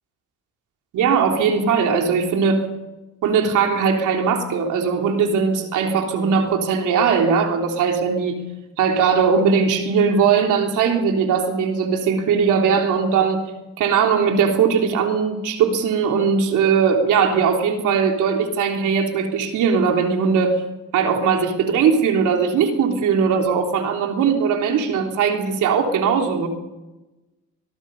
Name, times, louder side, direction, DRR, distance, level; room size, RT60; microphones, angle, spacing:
voice 1, 0.9-2.6 3.2-8.4 8.8-13.4 13.8-20.6 20.9-26.5, right 6 dB, 85° right, 3 dB, 3.5 m, -19 dB
23.0 x 21.5 x 5.5 m, 1.1 s
cardioid pair, 90°, 30 cm